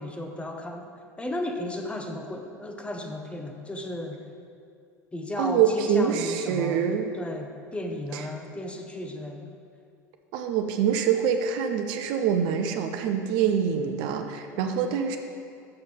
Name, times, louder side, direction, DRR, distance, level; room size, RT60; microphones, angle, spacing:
voice 1, 0.0-4.2 5.1-6.9 7.1-9.5 14.5-14.9, left 1 dB, 10° left, 4 dB, 0.9 m, -35 dB
voice 2, 5.4-7.1 8.1-8.2 10.3-15.2, right 7 dB, 60° right, 6 dB, 0.6 m, -25 dB
6.7 x 5.6 x 6.0 m, 2.4 s
hypercardioid pair, 80°, 9 cm